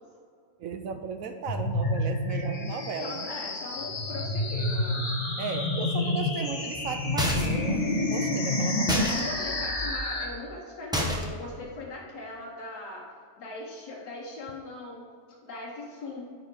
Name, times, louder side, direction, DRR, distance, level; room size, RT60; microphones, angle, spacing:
voice 1, 0.6-3.3 5.4-9.2, right 5 dB, 70° right, 7 dB, 0.9 m, -35 dB
sound 1, 1.5-10.3, left 2 dB, 35° left, 0.9 m, -29 dB
voice 2, 3.0-5.1 8.9-13.1 13.4-15.1 15.4-16.4, left 2 dB, 85° left, -3 dB, 1.6 m, -40 dB
sound 2, 7.2-7.7 8.9-9.2 10.9-11.4, equal, 5° right, 0.5 m, -28 dB
10.5 x 5.0 x 4.7 m, 2.2 s
omnidirectional pair, 1.7 m